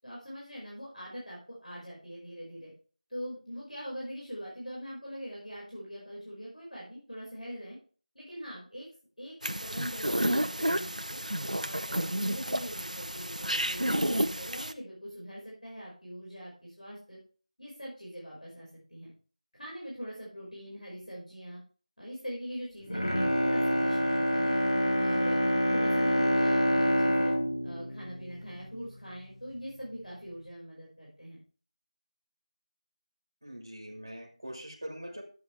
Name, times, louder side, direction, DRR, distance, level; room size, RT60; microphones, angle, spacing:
voice 1, 0.0-2.7 3.1-7.8 8.1-8.9 9.2-11.2 11.5-17.2 17.6-19.1 19.6-21.6 22.0-24.6 25.0-27.3 27.6-31.4, equal, 70° left, -5 dB, 5.3 m, -42 dB
sound 1, 9.4-14.7, right 1 dB, 75° right, 0.9 m, -31 dB
Bowed string instrument, 22.8-29.1 29.5-29.6, equal, 50° left, 1.3 m, -27 dB
voice 2, 33.4-35.2, equal, 25° right, -1 dB, 1.7 m, -42 dB
11.5 x 8.2 x 3.3 m, 0.39 s
figure-of-eight pair, 175°, 4 cm